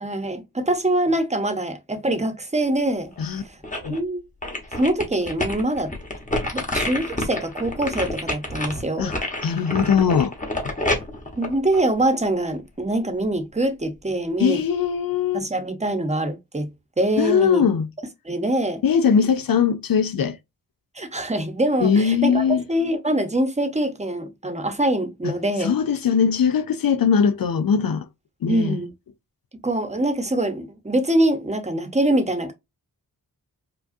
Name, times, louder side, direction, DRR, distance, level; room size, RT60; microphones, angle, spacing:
voice 1, 0.0-3.6 3.9-4.2 4.8-5.9 6.5-9.1 11.4-14.6 15.3-17.6 18.2-18.8 20.9-25.7 28.5-28.9 29.5-32.5, right 1 dB, 20° right, 0.9 m, -24 dB
sound 1, 3.2-4.0 4.4-12.5 12.9-13.0, left 1 dB, 20° left, 1.2 m, -28 dB
voice 2, 9.4-10.3 14.4-15.5 17.2-17.9 18.8-20.4 21.8-22.6 25.2-25.3 25.6-28.1 28.4-28.8, left 7 dB, 65° left, 0.5 m, -20 dB
4.8 x 2.4 x 2.6 m
wide cardioid pair, 65°, 38 cm